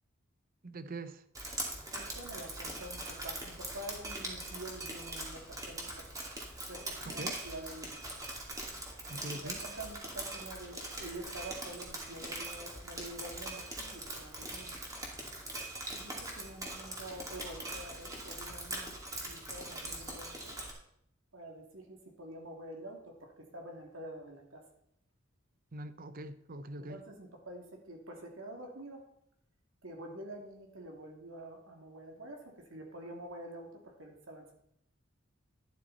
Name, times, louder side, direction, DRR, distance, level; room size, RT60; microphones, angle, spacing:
voice 1, 0.6-1.2 7.2-7.4 9.1-9.6 25.7-27.0, right 2 dB, 45° right, 12 dB, 0.8 m, -43 dB
Drip, 1.3-20.7, right 1 dB, 20° right, 2.4 m, -42 dB
voice 2, 1.9-6.1 6.7-8.0 9.3-14.8 15.9-18.9 19.2-20.6 21.3-24.6 26.8-29.0 29.8-32.4 32.7-34.5, right 1 dB, 85° right, 2 dB, 2.7 m, -47 dB
11.5 x 11.5 x 4.2 m, 0.72 s
head